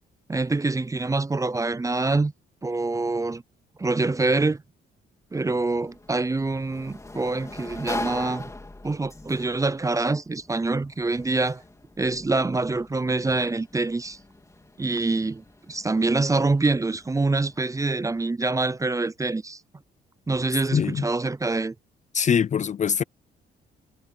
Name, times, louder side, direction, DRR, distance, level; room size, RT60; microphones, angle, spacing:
voice 1, 0.3-2.3 2.6-3.4 3.8-4.6 5.3-8.5 8.8-11.6 12.0-14.2 14.8-19.6 20.3-21.7, right 3 dB, 15° right, 0.5 m, -25 dB
Sliding door, 5.6-18.2, left 2 dB, 15° left, 3.0 m, -41 dB
voice 2, 20.7-21.0 22.1-23.0, left 7 dB, 35° left, 0.5 m, -23 dB
cardioid pair, 90°, 20 cm